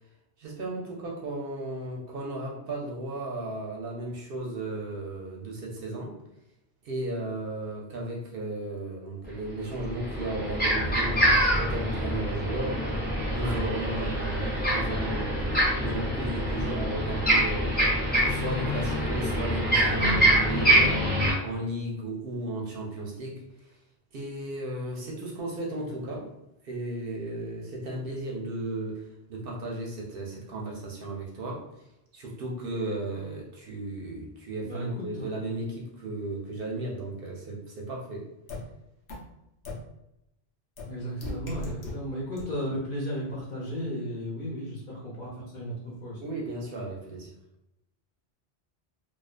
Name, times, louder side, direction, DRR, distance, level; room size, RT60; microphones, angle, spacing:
voice 1, 0.4-6.2 6.8-12.9 13.3-17.9 18.1-21.1 21.4-23.8 24.1-26.3 26.6-31.6 32.1-38.3 46.2-47.3, right 2 dB, 65° right, -2 dB, 0.7 m, -35 dB
sound 1, 9.2-9.3 9.7-21.3, right 1 dB, 10° left, 0.6 m, -25 dB
voice 2, 34.6-35.3 40.9-46.2, equal, 60° left, -6 dB, 0.9 m, -34 dB
sound 2, 38.5-38.6 39.1-39.2 39.6-39.7 40.8-40.9 41.2-41.9 42.4-42.5, left 2 dB, 85° left, 0.9 m, -36 dB
2.3 x 2.3 x 2.4 m, 0.84 s
omnidirectional pair, 1.1 m